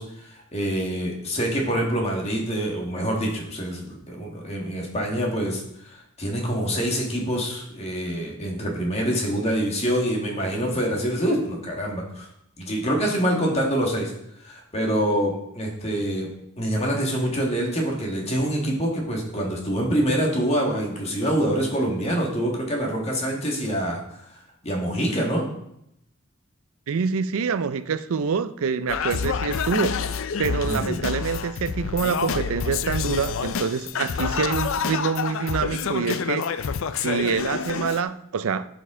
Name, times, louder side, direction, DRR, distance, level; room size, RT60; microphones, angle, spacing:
voice 1, 0.0-12.3 12.6-14.1 14.4-16.3 16.6-24.2 24.6-25.4 30.6-31.0, equal, 30° left, 1.7 m, -26 dB
voice 2, 26.9-30.0 30.4-36.7 37.0-38.7, right 5 dB, 70° right, 0.4 m, -26 dB
Singing, 28.9-38.0, left 6 dB, 60° left, 0.4 m, -28 dB
11.0 x 5.3 x 3.7 m
head